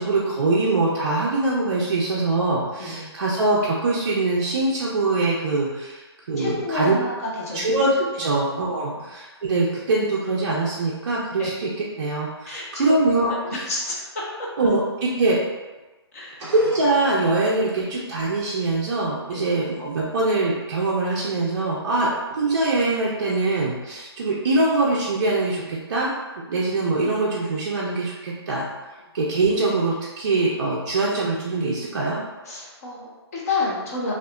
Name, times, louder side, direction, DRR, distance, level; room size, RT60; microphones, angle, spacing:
voice 1, 0.0-6.9 7.5-11.7 12.0-13.6 14.6-15.4 16.5-26.1 26.5-28.7 29.1-32.2, right 2 dB, 45° right, -6 dB, 0.4 m, -23 dB
voice 2, 2.8-3.2 6.4-7.7 11.4-11.5 12.5-13.0 13.7-13.9 16.1-16.4 19.3-19.5 32.5-34.1, left 3 dB, 35° left, -4 dB, 0.6 m, -29 dB
sound 1, 16.4-18.3, right 1 dB, 15° right, 0.7 m, -41 dB
2.7 x 2.4 x 2.2 m, 1.2 s
hypercardioid pair, 165°, 14 cm